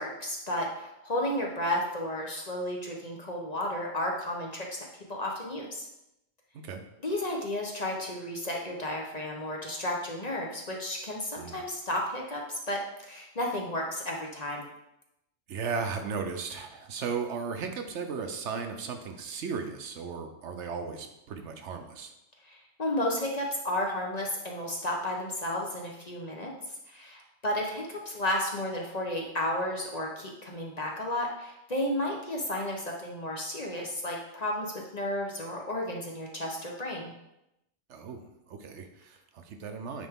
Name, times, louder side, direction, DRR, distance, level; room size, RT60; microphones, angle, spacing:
voice 1, 0.0-5.9 7.0-14.7 22.4-26.5 26.9-37.1, left 1 dB, 40° left, -1 dB, 0.8 m, -33 dB
voice 2, 15.5-22.1 37.9-40.1, right 5 dB, 70° right, 6 dB, 1.0 m, -36 dB
9.2 x 3.4 x 3.6 m, 0.86 s
omnidirectional pair, 1.3 m